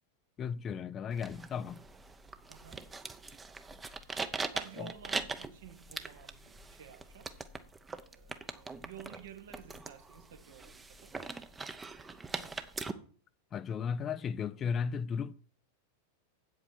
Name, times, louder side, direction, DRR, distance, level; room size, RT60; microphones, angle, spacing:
voice 1, 0.4-1.8 4.8-4.9 13.5-15.3, left 6 dB, 25° left, 0.4 m, -35 dB
sound 1, 1.1-12.9, right 4 dB, 15° right, 0.8 m, -42 dB
voice 2, 2.5-2.9 4.5-7.3 8.1-11.2, right 9 dB, 60° right, 1.2 m, -52 dB
8.5 x 8.0 x 4.6 m
figure-of-eight pair, 90°, 0 cm